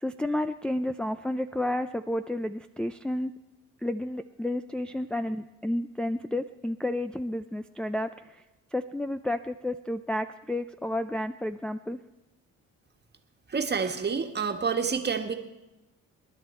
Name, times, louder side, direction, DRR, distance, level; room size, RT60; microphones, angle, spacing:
voice 1, 0.0-3.3 3.8-8.4 8.7-12.0, left 1 dB, 5° left, 7 dB, 0.4 m, -31 dB
voice 2, 13.5-15.3, right 5 dB, 35° right, 5 dB, 1.6 m, -28 dB
26.0 x 11.0 x 4.4 m, 1.0 s
cardioid pair, 90°, 30 cm